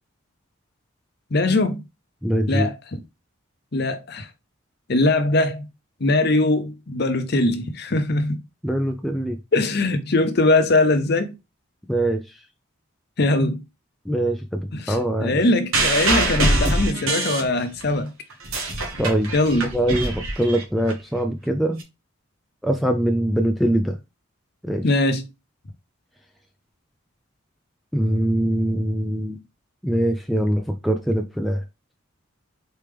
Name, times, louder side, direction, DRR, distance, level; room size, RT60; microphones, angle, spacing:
voice 1, 1.3-1.8 2.5-3.0 3.7-4.3 4.9-5.7 6.0-8.4 9.5-11.3 13.2-13.6 14.7-18.1 19.3-19.7 24.8-25.2, left 2 dB, 50° left, 0.7 m, -21 dB
voice 2, 2.2-2.7 8.6-9.4 11.9-12.3 14.1-15.4 19.0-19.3 19.7-21.8 22.6-24.0 24.6-24.9 27.9-29.4 29.8-31.6, right 1 dB, ahead, 0.3 m, -23 dB
sound 1, 15.7-17.9 18.3-20.9 21.8-21.9, right 2 dB, 90° right, 1.2 m, -23 dB
4.4 x 3.3 x 3.4 m
head